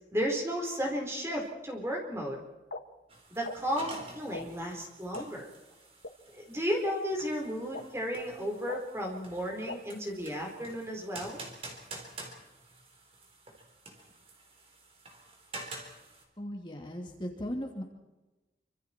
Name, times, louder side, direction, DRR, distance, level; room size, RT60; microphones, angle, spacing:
voice 1, 0.1-2.4 3.3-5.5 6.3-11.4, equal, 15° right, 1 dB, 4.3 m, -33 dB
sound 1, 2.7-2.8 3.4-3.5 4.3-4.4 5.1-5.2 6.0-6.1 6.8-6.9 7.7-7.8 8.7-8.8 9.7-9.8, left 2 dB, 85° left, 1.7 m, -38 dB
sound 2, 3.1-16.2, right 2 dB, 35° right, 4.0 m, -49 dB
voice 2, 16.4-17.8, equal, 25° left, 1 dB, 2.8 m, -37 dB
27.0 x 25.5 x 4.5 m, 1.1 s
head